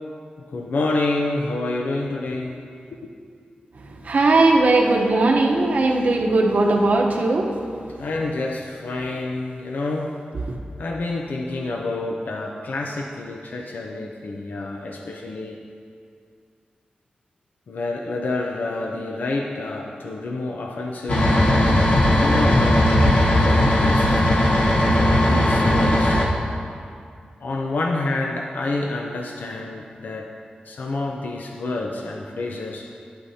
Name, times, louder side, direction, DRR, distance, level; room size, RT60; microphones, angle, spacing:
voice 1, 0.5-2.7 3.0-3.1 8.0-10.2 10.8-15.6 17.7-21.8 22.2-24.1 24.9-26.2 27.4-30.3 30.7-32.9, left 2 dB, 90° left, 1 dB, 0.6 m, -28 dB
voice 2, 3.7-8.0, right 2 dB, 65° right, 1 dB, 0.9 m, -19 dB
sound 1, 21.1-26.3, left 1 dB, 65° left, 1.1 m, -17 dB
11.0 x 9.8 x 2.8 m, 2.3 s
wide cardioid pair, 130°, 3 cm